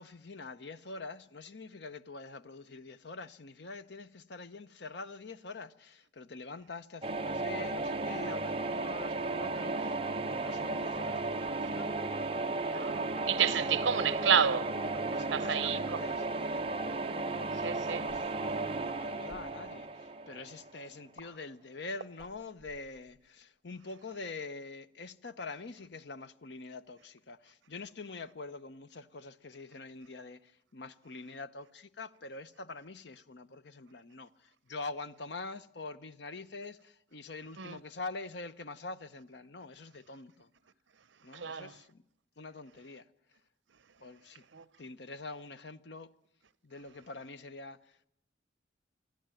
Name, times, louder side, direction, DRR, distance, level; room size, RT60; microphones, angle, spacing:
voice 1, 0.0-12.0 15.1-16.7 17.3-40.5 41.2-42.0 42.4-43.1 44.0-44.4 44.8-46.1 46.6-48.1, left 3 dB, 60° left, 0.8 m, -45 dB
sound 1, 7.0-20.9, right 3 dB, 30° right, 0.9 m, -34 dB
voice 2, 12.6-15.0 15.3-16.0 17.6-18.0 37.6-37.8 41.3-41.7 44.5-44.7, right 7 dB, 80° right, 0.8 m, -30 dB
sound 2, 14.0-14.3 15.3-15.6 16.6-16.9 18.0-18.4 19.2-19.5 21.2-21.3 22.1-23.3, left 1 dB, 45° left, 3.9 m, -54 dB
27.0 x 11.5 x 9.0 m
head